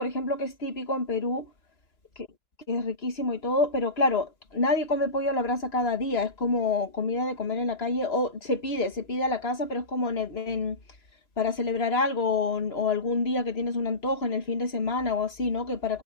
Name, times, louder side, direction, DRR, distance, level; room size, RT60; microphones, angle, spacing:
voice 1, 0.0-1.5 2.7-10.8 11.4-16.0, left 3 dB, 35° left, 2.2 m, -27 dB
omnidirectional pair, 2.0 m